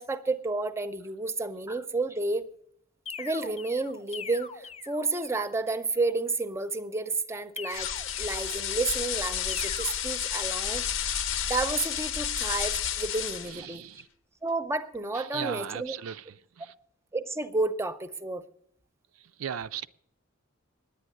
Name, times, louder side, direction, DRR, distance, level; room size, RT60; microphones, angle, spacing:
voice 1, 0.0-2.5 3.2-7.9 8.2-11.1 11.5-13.8 14.4-16.0 17.1-18.4, right 3 dB, 15° right, 0.6 m, -31 dB
sound 1, 3.1-5.5 7.6-8.9 9.5-9.9, left 6 dB, 30° left, 0.6 m, -42 dB
sound 2, 7.7-13.6, left 9 dB, 65° left, 0.7 m, -31 dB
voice 2, 13.4-14.1 15.1-16.7 19.1-19.9, right 8 dB, 80° right, 0.4 m, -38 dB
9.9 x 8.9 x 9.2 m
head